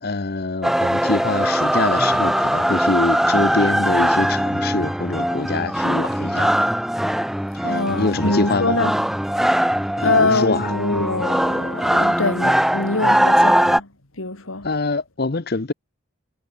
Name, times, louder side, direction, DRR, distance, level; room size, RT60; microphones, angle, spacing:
voice 1, 0.0-6.5 7.5-8.8 10.0-10.7 14.6-15.7, left 3 dB, 50° left, 0.8 m, -24 dB
sound 1, 0.6-13.8, equal, ahead, 0.3 m, -20 dB
voice 2, 7.6-8.9 9.5-9.6 10.0-13.9 14.2-14.7, left 3 dB, 80° left, 2.8 m, -23 dB
head